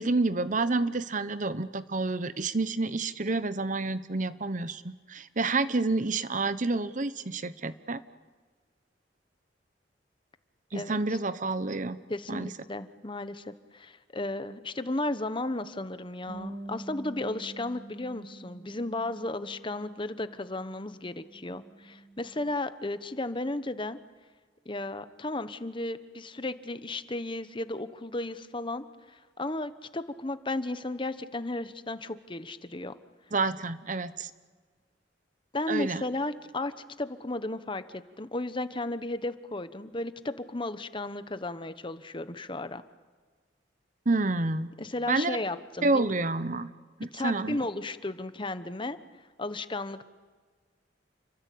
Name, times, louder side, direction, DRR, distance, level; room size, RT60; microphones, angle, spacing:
voice 1, 0.0-8.0 10.7-12.0 12.3-12.5 33.3-34.3 35.7-36.0 44.1-44.7 45.1-45.4 45.8-46.7 47.0-47.6, right 3 dB, 45° right, 14 dB, 1.0 m, -29 dB
voice 2, 12.1-24.0 24.6-32.9 35.5-36.7 37.0-42.8 44.8-46.0 47.1-49.0 49.4-50.1, left 2 dB, 25° left, 12 dB, 1.1 m, -34 dB
Bass guitar, 16.3-22.5, right 2 dB, 60° right, 7.9 m, -47 dB
30.0 x 23.0 x 8.6 m, 1.5 s
head